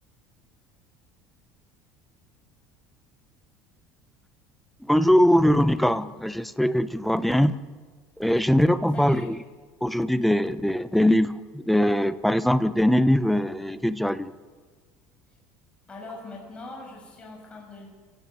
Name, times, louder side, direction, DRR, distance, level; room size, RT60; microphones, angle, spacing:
voice 1, 4.8-7.6 8.2-9.4 9.8-14.3, equal, ahead, 12 dB, 0.9 m, -21 dB
voice 2, 8.9-9.3 15.9-17.9, left 2 dB, 20° left, 0 dB, 6.4 m, -41 dB
28.5 x 16.5 x 9.3 m, 1.5 s
cardioid pair, 140°, 6 cm